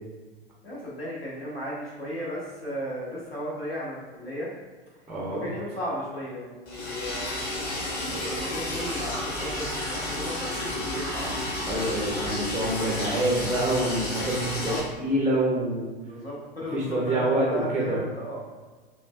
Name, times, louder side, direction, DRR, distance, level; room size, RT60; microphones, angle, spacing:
voice 1, 0.6-4.5 5.3-7.3 7.9-11.3 14.4-14.8 16.1-18.4, equal, 80° left, -5 dB, 1.1 m, -35 dB
voice 2, 5.1-5.5 11.7-15.9 16.7-18.0, right 1 dB, ahead, -4 dB, 0.4 m, -26 dB
Liquid, 6.7-14.8, left 1 dB, 30° left, 1.0 m, -31 dB
6.0 x 2.2 x 2.3 m, 1.4 s
figure-of-eight pair, 95°, 29 cm